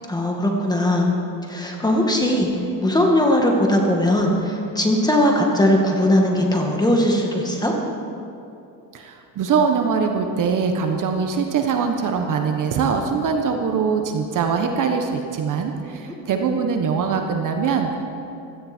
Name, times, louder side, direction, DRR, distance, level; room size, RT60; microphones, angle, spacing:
voice 1, 0.1-1.1 1.5-2.5 2.8-7.7 16.0-16.1, left 1 dB, 10° left, 0 dB, 2.1 m, -19 dB
voice 2, 8.9-18.0, right 5 dB, 45° right, 4 dB, 1.4 m, -22 dB
16.5 x 13.5 x 4.5 m, 2.7 s
cardioid pair, 115°, 43 cm